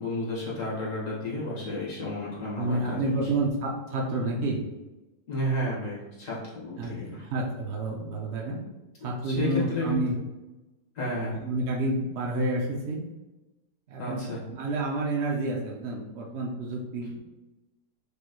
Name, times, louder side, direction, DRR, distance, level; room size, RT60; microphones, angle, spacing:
voice 1, 0.0-3.2 5.3-7.3 9.0-10.0 10.9-11.4 14.0-14.4, left 1 dB, 50° left, -6 dB, 1.7 m, -32 dB
voice 2, 2.6-4.6 6.8-8.6 9.0-10.1 11.4-13.0 13.9-14.2 14.5-17.2, right 2 dB, 80° right, -1 dB, 0.6 m, -29 dB
5.1 x 3.0 x 2.2 m, 1.1 s
omnidirectional pair, 1.9 m